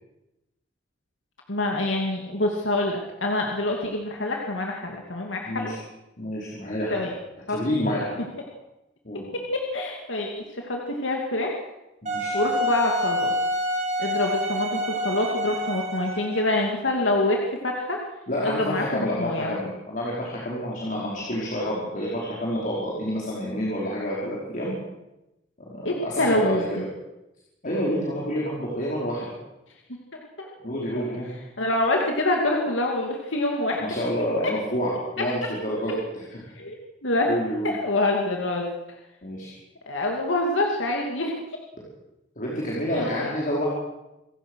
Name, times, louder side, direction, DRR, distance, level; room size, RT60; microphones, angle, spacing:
voice 1, 1.5-5.7 6.9-7.1 7.5-7.6 7.9-8.0 9.3-11.5 12.3-13.3 14.0-18.0 18.4-19.5 25.8-26.8 29.9-30.0 30.4-30.5 31.0-31.1 31.6-34.0 36.5-36.7 37.0-37.3 37.6-38.7 39.9-41.3 42.9-43.3, left 2 dB, 85° left, 0 dB, 2.7 m, -26 dB
voice 2, 5.4-5.8 6.2-7.1 7.5-8.2 9.0-9.2 12.0-12.3 18.3-24.7 25.7-26.8 27.6-29.2 30.6-31.3 33.8-36.4 37.3-37.7 39.2-39.5 42.3-43.7, equal, 45° left, -5 dB, 5.1 m, -28 dB
Wind instrument woodwind instrument, 12.1-16.6, equal, 40° right, 3.7 m, -27 dB
27.0 x 16.0 x 6.5 m, 0.95 s
head